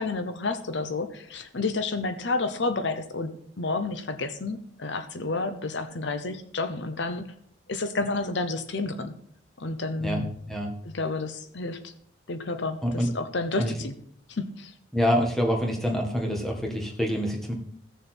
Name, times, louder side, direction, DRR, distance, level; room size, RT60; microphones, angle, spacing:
voice 1, 0.0-7.3 7.7-9.1 9.6-10.3 10.9-11.9 12.3-13.9 14.3-14.7, left 3 dB, 70° left, 9 dB, 0.8 m, -30 dB
voice 2, 10.0-10.7 12.8-13.1 13.6-13.7 14.9-17.5, equal, ahead, 1 dB, 1.7 m, -26 dB
15.5 x 6.8 x 4.4 m, 0.66 s
head